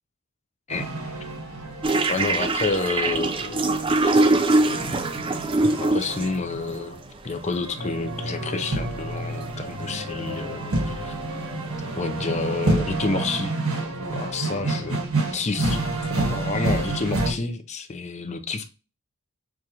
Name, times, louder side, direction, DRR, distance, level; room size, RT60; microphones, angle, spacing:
sound 1, 0.7-17.3, right 2 dB, 80° right, 1.3 m, -29 dB
sound 2, 1.8-6.4 7.4-7.5 7.9-8.0 8.4-8.8 9.2-9.5 9.9-12.3, right 2 dB, 25° right, 0.3 m, -23 dB
voice 1, 2.1-3.7 4.0-4.2 5.8-7.0 7.2-11.1 12.0-13.5 14.1-15.0 15.3-15.8 16.1-18.7, left 4 dB, 30° left, 0.6 m, -29 dB
6.4 x 2.5 x 2.8 m
head